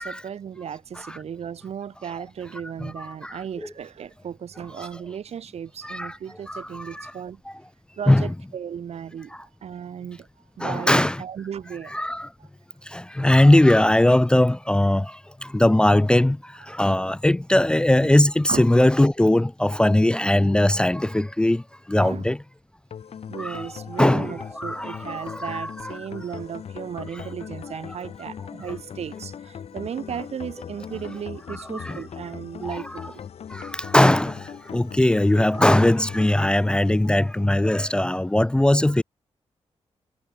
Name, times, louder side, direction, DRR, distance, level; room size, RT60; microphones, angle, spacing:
voice 1, 0.0-7.4 8.0-10.3 10.6-11.9 18.0-18.1 18.5-18.7 22.0-22.3 23.3-33.2, right 8 dB, 70° right, 4.8 m, -35 dB
voice 2, 2.8-3.4 4.8-5.0 5.8-6.2 6.5-7.1 7.5-7.6 8.1-8.3 9.3-9.4 10.6-11.2 11.9-12.3 12.8-22.4 23.4-25.9 27.1-27.2 27.7-28.0 31.5-32.0 32.6-33.0 33.5-39.0, left 1 dB, 10° left, 0.6 m, -20 dB
sound 1, 22.9-38.0, left 8 dB, 70° left, 6.9 m, -40 dB
wide cardioid pair, 170°, 11 cm